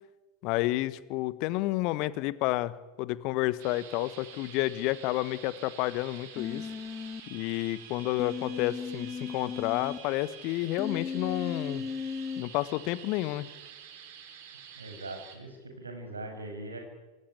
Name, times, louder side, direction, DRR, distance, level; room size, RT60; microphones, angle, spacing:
voice 1, 0.4-6.7 7.3-11.8 12.4-13.5, left 17 dB, 40° left, 17 dB, 1.3 m, -30 dB
sound 1, 3.6-15.4, right 8 dB, 50° right, 4.8 m, -48 dB
Human voice, 6.4-7.2 8.2-10.0 10.8-12.4, left 6 dB, 15° left, 2.0 m, -36 dB
voice 2, 14.8-16.8, right 2 dB, 75° right, 4 dB, 6.8 m, -41 dB
26.5 x 19.5 x 9.7 m, 1.2 s
figure-of-eight pair, 90°, 0 cm